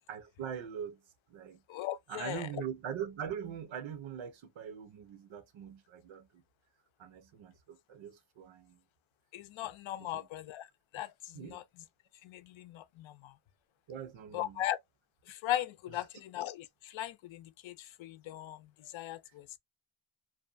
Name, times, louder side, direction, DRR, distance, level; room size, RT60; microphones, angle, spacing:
voice 1, 0.1-1.0 1.3-1.6 2.1-6.4 7.0-8.8 10.0-10.3 11.3-11.6 13.9-14.6, right 8 dB, 75° right, 0.8 m, -42 dB
voice 2, 1.7-2.5 9.3-11.6 12.2-13.4 14.3-14.8 15.3-19.6, left 13 dB, 80° left, 0.6 m, -39 dB
2.6 x 2.2 x 2.5 m
cardioid pair, 100°, 46 cm